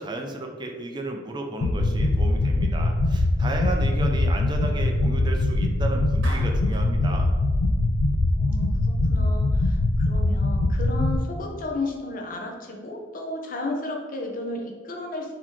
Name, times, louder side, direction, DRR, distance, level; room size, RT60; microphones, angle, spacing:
voice 1, 0.0-7.3, right 2 dB, 25° right, 2 dB, 0.4 m, -33 dB
sound 1, 1.6-11.2, left 2 dB, 70° left, 0.3 m, -22 dB
Clapping, 6.2-6.9, right 1 dB, 85° right, 1.3 m, -39 dB
voice 2, 8.3-15.3, left 2 dB, 45° left, 1 dB, 0.7 m, -33 dB
4.1 x 2.8 x 4.4 m, 1.5 s
head